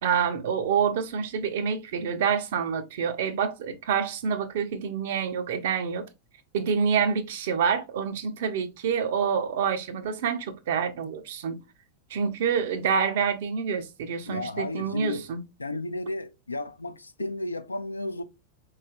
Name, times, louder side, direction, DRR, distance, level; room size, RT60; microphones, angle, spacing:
voice 1, 0.0-6.0 6.5-11.6 12.1-15.4, right 6 dB, 55° right, 0.6 m, -27 dB
voice 2, 14.3-15.3 15.6-18.2, left 2 dB, 80° left, 0.4 m, -33 dB
4.3 x 3.2 x 2.3 m
figure-of-eight pair, 90°, 0 cm